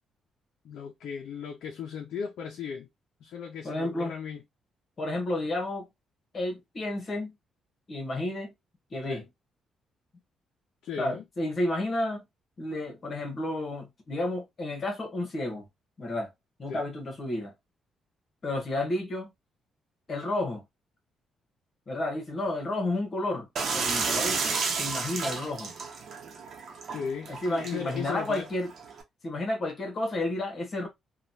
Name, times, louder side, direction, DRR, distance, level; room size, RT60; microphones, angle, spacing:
voice 1, 0.6-2.9 3.2-4.4 9.0-9.3 10.8-11.2 16.7-16.8 26.9-28.5, left 7 dB, 75° left, 0.6 m, -37 dB
voice 2, 3.6-4.1 5.0-5.9 6.3-7.3 7.9-8.5 8.9-9.2 11.0-12.2 12.6-15.7 16.0-16.3 16.6-17.5 18.4-19.3 20.1-20.6 21.9-23.5 23.7-25.7 27.3-28.7 29.2-30.9, left 1 dB, 40° left, 1.2 m, -31 dB
sound 1, 23.6-29.0, right 4 dB, 55° right, 0.8 m, -32 dB
3.0 x 2.4 x 2.6 m
cardioid pair, 90°, 0 cm